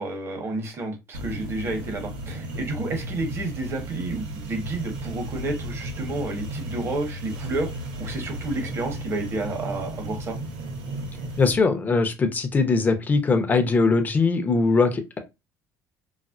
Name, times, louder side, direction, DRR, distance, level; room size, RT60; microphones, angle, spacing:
voice 1, 0.0-7.7 8.0-10.4, right 2 dB, 35° right, 1.1 m, -30 dB
sound 1, 1.1-11.6, right 1 dB, 90° right, 1.0 m, -34 dB
voice 2, 11.4-15.2, left 4 dB, 25° left, 0.7 m, -21 dB
4.1 x 2.0 x 2.4 m
cardioid pair, 120°, 7 cm